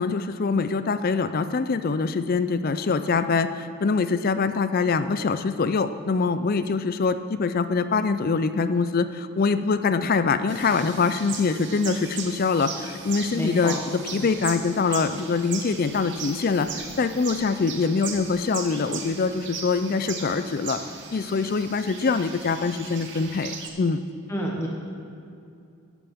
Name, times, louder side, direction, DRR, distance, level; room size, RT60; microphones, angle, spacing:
voice 1, 0.0-20.8 21.1-24.0, left 4 dB, 40° left, 11 dB, 0.4 m, -24 dB
sound 1, 10.5-23.7, right 6 dB, 50° right, 1.0 m, -38 dB
voice 2, 13.3-13.8 24.3-24.7, equal, 10° left, -2 dB, 0.9 m, -28 dB
12.5 x 11.0 x 3.6 m, 2.5 s
head